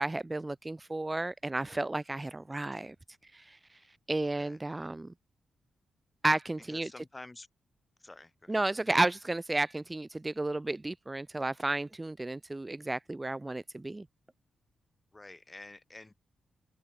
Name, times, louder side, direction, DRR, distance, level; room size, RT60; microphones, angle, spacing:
voice 1, 0.0-3.0 3.3-3.8 4.1-5.1 6.2-6.9 8.5-14.1, right 2 dB, 20° right, 0.4 m, -32 dB
voice 2, 6.7-7.5 8.0-8.6 15.1-16.1, left 2 dB, 20° left, 1.2 m, -49 dB
open air
supercardioid pair, 55°, 0 cm